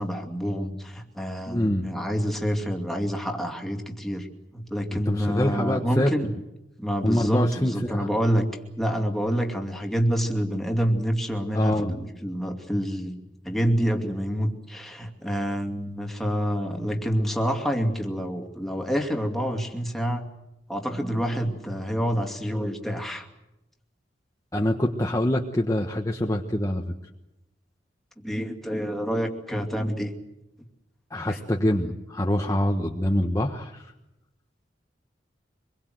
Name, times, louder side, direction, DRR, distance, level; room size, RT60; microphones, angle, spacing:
voice 1, 0.0-4.3 4.5-6.3 6.8-8.5 8.8-13.2 13.4-20.3 20.7-23.3 28.2-30.1 31.3-31.4, equal, ahead, 2 dB, 2.6 m, -27 dB
voice 2, 1.5-1.9 4.9-6.1 7.0-8.1 11.5-11.9 24.5-26.8 31.1-33.9, left 1 dB, 20° left, 2 dB, 1.2 m, -25 dB
25.5 x 22.0 x 7.9 m, 0.94 s
head